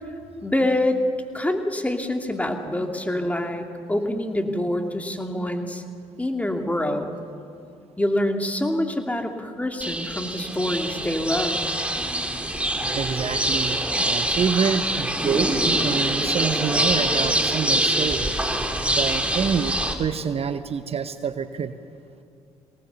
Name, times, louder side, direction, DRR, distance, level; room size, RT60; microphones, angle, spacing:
voice 1, 0.4-1.0 1.3-5.8 6.2-7.1 8.0-11.8, left 1 dB, 10° left, 4 dB, 2.6 m, -26 dB
sound 1, 9.8-19.9, right 1 dB, 10° right, 3.1 m, -24 dB
voice 2, 12.9-18.3 18.9-21.7, right 6 dB, 45° right, 11 dB, 0.9 m, -27 dB
24.0 x 18.5 x 7.0 m, 2.5 s
hypercardioid pair, 55°, 14 cm